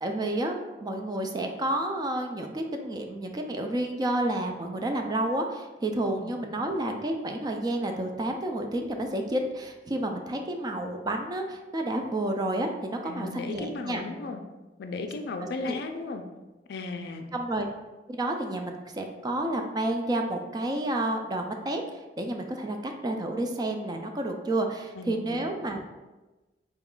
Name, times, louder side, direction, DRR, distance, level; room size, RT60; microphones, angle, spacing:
voice 1, 0.0-14.0 15.6-15.8 17.3-17.7 18.1-25.8, right 1 dB, 25° right, 4 dB, 0.3 m, -30 dB
voice 2, 13.1-14.4 14.8-16.3 16.7-17.3 25.0-25.4, left 3 dB, 65° left, 6 dB, 0.4 m, -36 dB
4.0 x 2.3 x 3.7 m, 1.1 s
head